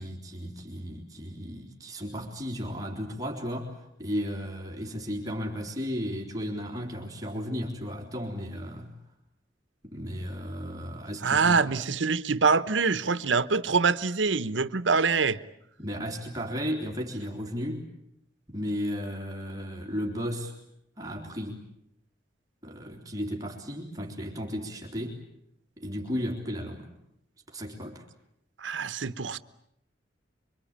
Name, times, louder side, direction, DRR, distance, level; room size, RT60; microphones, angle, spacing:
voice 1, 0.0-8.9 9.8-11.7 15.8-17.9 18.5-20.5 21.0-21.7 22.6-25.2 25.8-26.9 27.5-28.0, equal, 20° right, 0 dB, 3.5 m, -34 dB
voice 2, 11.2-15.4 28.6-29.4, right 4 dB, 90° right, 14 dB, 1.0 m, -25 dB
26.5 x 24.0 x 8.8 m, 0.77 s
head